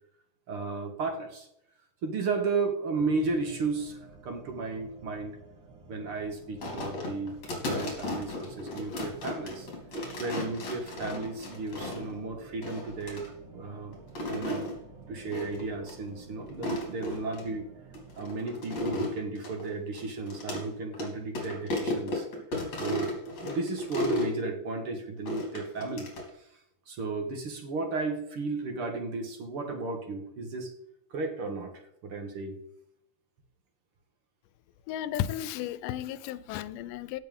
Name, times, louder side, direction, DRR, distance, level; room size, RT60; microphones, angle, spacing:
voice 1, 0.5-1.5 2.0-4.0 4.2-5.4 5.9-9.7 10.2-14.0 14.3-14.7 15.1-17.7 18.2-22.3 22.8-26.1 26.3-26.5 26.9-30.7 31.1-32.6, right 3 dB, 50° right, 2.1 m, -34 dB
sound 1, 2.9-18.4, right 4 dB, 75° right, 3.8 m, -51 dB
sound 2, 6.6-12.2 12.6-13.3 13.9-14.8 15.3-15.6 15.9-16.0 16.5-17.4 17.9-20.6 20.9-21.1 21.3-24.3 25.3-26.3, left 1 dB, 55° left, 4.4 m, -34 dB
voice 2, 34.9-37.2, left 11 dB, 90° left, 2.3 m, -34 dB
16.5 x 7.4 x 3.7 m
omnidirectional pair, 3.7 m